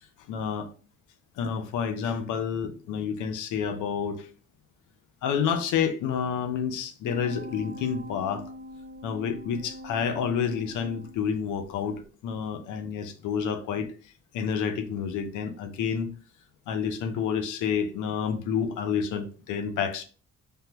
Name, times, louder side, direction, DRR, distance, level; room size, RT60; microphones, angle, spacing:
voice 1, 0.3-0.7 1.4-4.3 5.2-8.5 9.0-13.9 14.3-16.1 16.7-20.0, left 7 dB, 85° left, 8 dB, 0.6 m, -29 dB
sound 1, 7.1-11.6 12.0-12.1, left 1 dB, 45° right, 1.0 m, -43 dB
3.5 x 2.2 x 2.8 m, 0.38 s
cardioid pair, 90°, 30 cm